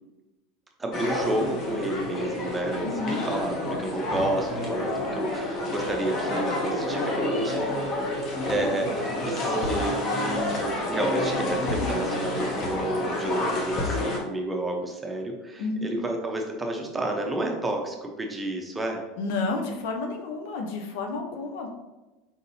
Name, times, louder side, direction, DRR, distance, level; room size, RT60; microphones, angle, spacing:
voice 1, 0.8-7.7 8.4-19.0, right 1 dB, 15° right, 2 dB, 0.9 m, -30 dB
sound 1, 0.9-14.2, left 1 dB, 40° left, 1.2 m, -29 dB
voice 2, 2.8-3.3 15.6-16.0 19.2-21.7, left 3 dB, 60° left, 3 dB, 0.7 m, -31 dB
4.6 x 3.9 x 2.7 m, 1.1 s
hypercardioid pair, 80°, 0 cm